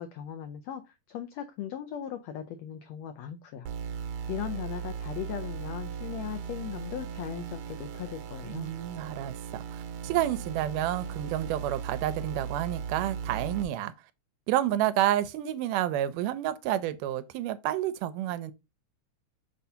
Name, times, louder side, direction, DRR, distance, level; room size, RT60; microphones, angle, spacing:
voice 1, 0.0-3.7 4.3-8.7, left 10 dB, 90° left, 1.5 m, -38 dB
sound 1, 3.7-13.6, right 7 dB, 65° right, 1.9 m, -38 dB
voice 2, 8.5-13.9 14.5-18.5, right 12 dB, 85° right, 2.1 m, -30 dB
6.3 x 2.7 x 5.5 m
omnidirectional pair, 3.7 m